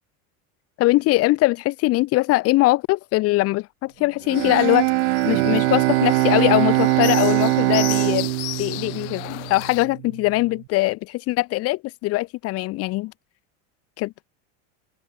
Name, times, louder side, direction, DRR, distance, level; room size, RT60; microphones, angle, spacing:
voice 1, 0.8-4.9 5.2-8.3 8.6-13.1 14.0-14.1, left 20 dB, 40° left, 2.2 m, -21 dB
Bowed string instrument, 4.2-10.3, right 24 dB, 65° right, 1.6 m, -22 dB
sound 1, 4.3-9.9, left 22 dB, 70° left, 4.9 m, -35 dB
supercardioid pair, 165°, 36 cm